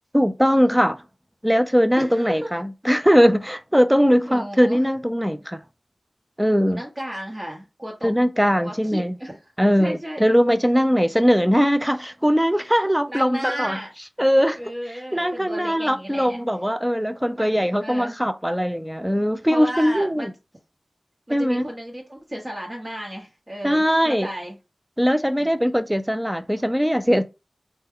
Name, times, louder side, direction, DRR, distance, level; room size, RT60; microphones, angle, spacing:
voice 1, 0.1-1.0 1.4-5.6 6.4-6.8 8.0-9.2 9.6-13.8 14.2-14.6 14.9-20.3 21.3-21.6 23.6-24.3 25.0-27.2, equal, 5° right, 0.4 m, -20 dB
voice 2, 2.0-2.5 4.3-4.8 6.7-8.1 8.6-9.4 9.8-10.2 13.1-13.9 14.6-16.4 17.3-17.5 17.8-18.1 19.5-20.3 21.3-24.6 25.4-25.5, equal, 35° right, 0.9 m, -34 dB
3.3 x 2.1 x 3.5 m
wide cardioid pair, 55°, 0 cm